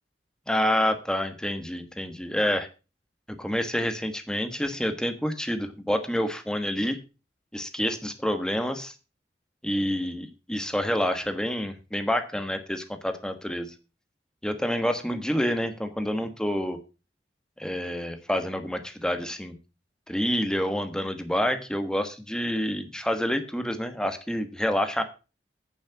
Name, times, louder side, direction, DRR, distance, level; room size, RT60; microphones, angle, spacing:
voice 1, 0.5-2.7 3.3-7.0 7.5-8.9 9.6-13.7 14.4-16.8 17.6-19.5 20.1-25.0, equal, 5° left, 7 dB, 1.2 m, -28 dB
8.7 x 7.3 x 6.0 m, 0.32 s
head